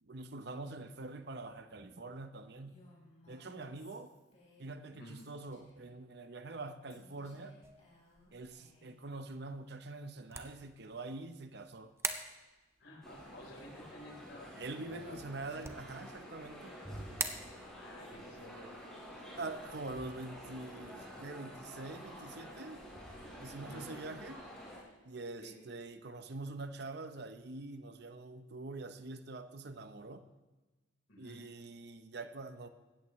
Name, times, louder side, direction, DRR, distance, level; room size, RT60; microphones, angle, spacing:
voice 1, 0.0-2.8 3.3-4.1 4.6-7.6 8.3-11.9 14.6-16.8 19.4-22.8 23.4-24.5 25.0-30.2 31.2-32.7, right 2 dB, 55° right, 9 dB, 0.8 m, -45 dB
Female speech woman speaking, 2.7-4.9 5.2-5.9 6.9-9.0, left 1 dB, 35° left, 4.5 m, -63 dB
sound 1, 7.6-21.8, right 4 dB, 15° right, 0.7 m, -48 dB
voice 2, 12.8-14.5 14.9-15.2 17.7-19.4 23.6-23.9 25.4-25.6 31.1-31.4, left 1 dB, 80° left, 0 dB, 3.9 m, -53 dB
sound 2, 13.0-24.8, equal, 5° left, 4.4 m, -49 dB
17.0 x 13.5 x 3.1 m, 1.2 s
head